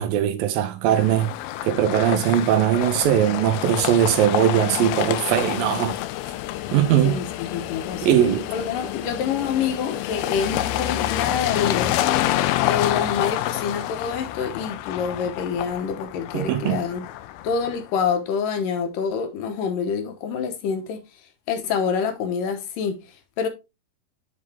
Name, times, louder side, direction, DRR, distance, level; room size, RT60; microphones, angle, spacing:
voice 1, 0.0-1.3 1.6-6.0 6.7-7.2 8.0-8.5 16.3-16.8, right 10 dB, 75° right, 2.5 m, -20 dB
sound 1, 0.9-17.9, left 14 dB, 90° left, 2.5 m, -28 dB
voice 2, 7.1-8.2 8.5-12.2 12.6-17.1 17.4-21.0 21.5-23.0 23.4-23.5, left 6 dB, 70° left, 2.5 m, -27 dB
8.1 x 5.2 x 3.3 m
omnidirectional pair, 4.3 m